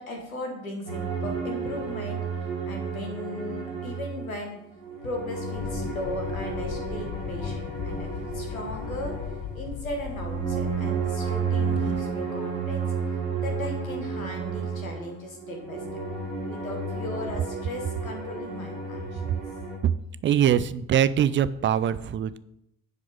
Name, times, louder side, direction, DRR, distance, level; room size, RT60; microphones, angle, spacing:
voice 1, 0.0-4.6 5.0-16.0 16.5-19.4, left 1 dB, 85° left, 2 dB, 1.4 m, -37 dB
sound 1, 0.9-4.4 4.8-19.8, right 4 dB, 85° right, 2.7 m, -32 dB
sound 2, 5.6-12.0, left 9 dB, 35° left, 0.7 m, -37 dB
voice 2, 20.2-22.4, right 9 dB, 30° right, 15 dB, 0.5 m, -23 dB
10.5 x 4.9 x 5.1 m, 0.81 s
figure-of-eight pair, 45°, 40 cm